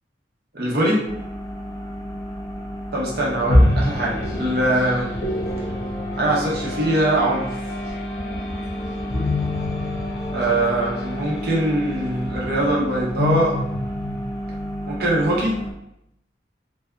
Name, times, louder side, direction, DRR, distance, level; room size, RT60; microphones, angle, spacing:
voice 1, 0.5-1.0 2.9-5.1 6.2-7.5 10.3-13.5 14.9-15.6, right 1 dB, 60° right, -4 dB, 0.6 m, -22 dB
sound 1, 1.1-15.7, equal, 20° left, 0.3 m, -32 dB
sound 2, 3.5-15.1, left 1 dB, 70° left, 0.6 m, -26 dB
2.6 x 2.2 x 2.3 m, 0.80 s
head